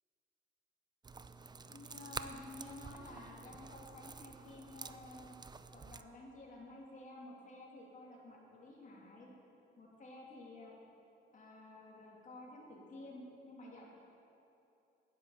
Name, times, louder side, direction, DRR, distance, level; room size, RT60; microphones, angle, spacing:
sound 1, 1.0-6.0, right 4 dB, 20° right, 0.5 m, -49 dB
voice 1, 1.6-5.3 5.7-9.3 9.8-10.7 11.3-13.9, left 2 dB, 40° left, -3 dB, 2.8 m, -52 dB
10.0 x 10.0 x 7.2 m, 2.9 s
cardioid pair, 90°, 20 cm